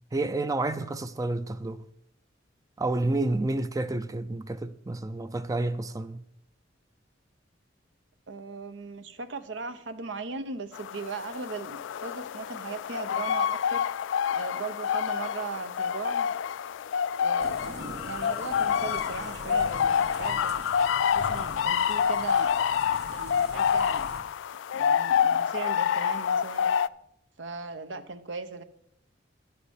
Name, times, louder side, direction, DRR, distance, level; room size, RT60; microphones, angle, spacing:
voice 1, 0.1-1.8 2.8-6.2, right 2 dB, 20° right, 0.4 m, -30 dB
voice 2, 8.3-13.8 14.3-16.3 17.2-20.7 21.0-22.5 23.1-24.1 24.7-26.7 27.4-28.6, right 4 dB, 80° right, 0.9 m, -38 dB
sound 1, 10.7-26.9, left 8 dB, 75° left, 0.3 m, -27 dB
sound 2, 17.4-24.2, right 2 dB, 60° right, 1.3 m, -44 dB
10.5 x 6.8 x 7.2 m
head